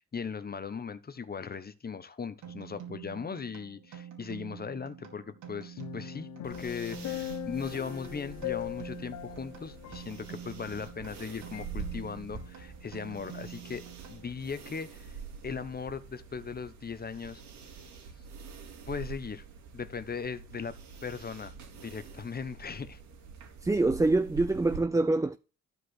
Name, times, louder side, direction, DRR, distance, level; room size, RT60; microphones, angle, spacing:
voice 1, 0.0-13.8 14.1-15.2 15.4-17.4 17.9-18.0 18.9-19.4 19.7-20.8 21.0-21.5 21.8-23.0, left 6 dB, 30° left, 1.1 m, -38 dB
sound 1, 2.4-14.6, right 10 dB, 90° right, 3.3 m, -47 dB
sound 2, 5.8-11.2 11.5-11.7, left 15 dB, 70° left, 0.8 m, -40 dB
sound 3, 6.4-24.8, right 5 dB, 70° right, 3.0 m, -46 dB
voice 2, 23.6-25.4, right 2 dB, 10° right, 0.5 m, -25 dB
12.5 x 5.1 x 6.3 m
cardioid pair, 90°, 30 cm